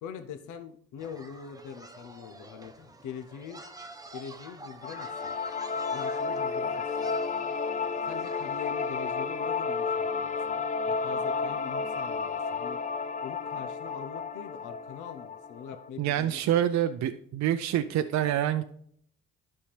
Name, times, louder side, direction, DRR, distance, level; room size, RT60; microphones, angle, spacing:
voice 1, 0.0-3.6 4.1-5.3 5.9-6.9 8.0-10.6 10.9-12.8 13.2-16.6, left 7 dB, 85° left, 7 dB, 0.8 m, -43 dB
sound 1, 1.0-8.7, right 2 dB, 10° right, 0.9 m, -48 dB
sound 2, 4.8-15.9, left 5 dB, 25° left, 0.5 m, -32 dB
voice 2, 16.0-18.6, right 11 dB, 65° right, 10 dB, 0.5 m, -26 dB
11.5 x 5.5 x 3.4 m, 0.66 s
cardioid pair, 90°, 30 cm